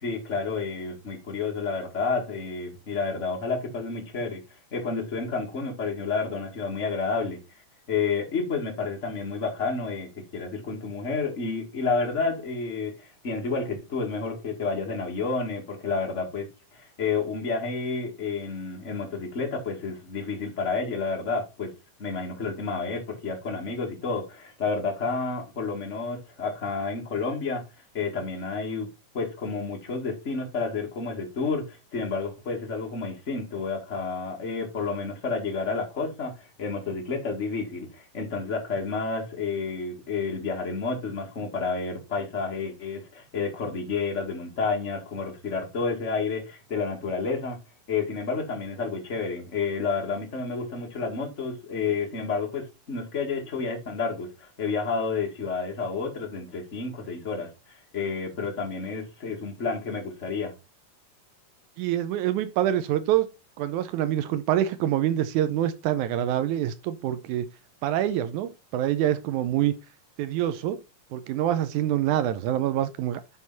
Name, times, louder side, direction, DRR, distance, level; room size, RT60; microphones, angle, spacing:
voice 1, 0.0-4.4 4.7-7.4 7.9-21.7 22.0-27.6 27.9-28.9 29.1-47.6 47.9-60.5, left 4 dB, 30° left, 1.4 m, -30 dB
voice 2, 61.8-63.3 63.6-67.5 67.8-69.7 70.2-70.8 71.1-73.2, right 12 dB, 80° right, 1.9 m, -26 dB
11.0 x 3.8 x 4.0 m
omnidirectional pair, 3.9 m